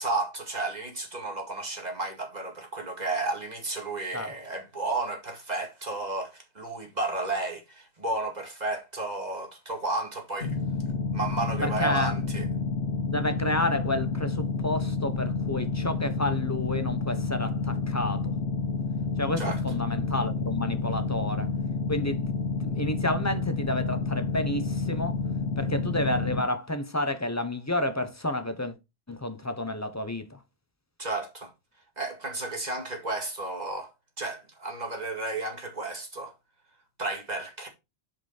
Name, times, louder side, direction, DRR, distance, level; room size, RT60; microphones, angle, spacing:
voice 1, 0.0-10.6 11.1-12.5 19.4-19.6 31.0-31.5 32.0-33.9 34.2-36.3 37.0-37.7, right 2 dB, 40° right, 2.2 m, -32 dB
sound 1, 10.4-26.4, left 4 dB, 90° left, 1.4 m, -29 dB
voice 2, 11.6-12.2 13.1-18.3 19.2-21.5 21.9-22.3 22.6-25.2 25.6-28.7 29.1-30.4, left 1 dB, 15° left, 0.9 m, -30 dB
7.0 x 5.3 x 4.2 m
omnidirectional pair, 1.1 m